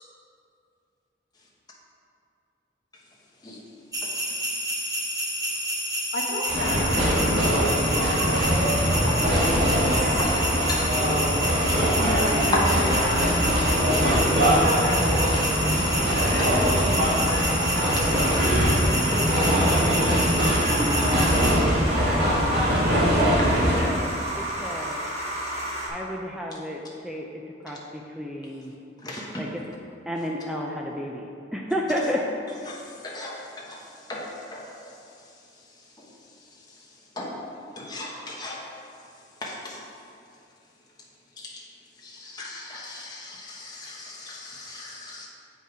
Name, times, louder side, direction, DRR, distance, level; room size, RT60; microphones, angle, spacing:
sound 1, 3.9-21.5, equal, 20° right, 0.9 m, -29 dB
voice 1, 6.1-9.3 11.7-13.5 14.0-14.4 14.8-16.0, left 1 dB, 80° left, 0 dB, 1.1 m, -33 dB
sound 2, 6.4-25.9, right 1 dB, 35° right, 1.3 m, -33 dB
sound 3, 6.5-23.8, equal, 60° right, 2.0 m, -22 dB
voice 2, 9.8-10.9 11.8-11.9 12.5-12.6 16.4-16.5 18.0-18.1 29.0-29.4 32.7-32.8 33.0-33.4 34.1-34.2 34.5-34.6 37.2-37.4 37.8-38.6 39.4-39.8 42.1-45.3, left 2 dB, 20° left, -4 dB, 1.2 m, -34 dB
voice 3, 23.8-25.0 25.9-27.3 27.6-28.7 29.4-29.6 30.1-31.3 31.5-32.3 32.6-32.7, equal, 5° right, -1 dB, 0.5 m, -32 dB
7.7 x 5.4 x 4.9 m, 2.5 s
head